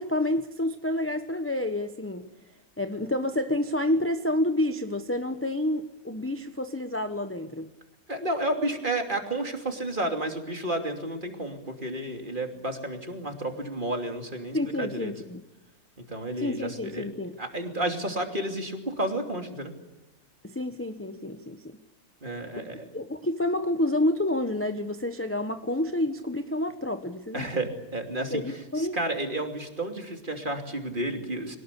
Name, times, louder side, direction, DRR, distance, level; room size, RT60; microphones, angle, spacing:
voice 1, 0.0-2.3 2.8-7.7 14.5-15.4 16.4-17.4 20.4-21.8 22.6-22.7 22.9-27.5 28.3-29.0, left 1 dB, 10° left, 8 dB, 0.9 m, -29 dB
voice 2, 8.1-15.1 16.1-17.1 17.4-19.7 22.2-22.8 27.3-31.6, right 1 dB, 30° right, 4 dB, 3.0 m, -31 dB
23.5 x 19.5 x 8.4 m, 1.0 s
omnidirectional pair, 1.7 m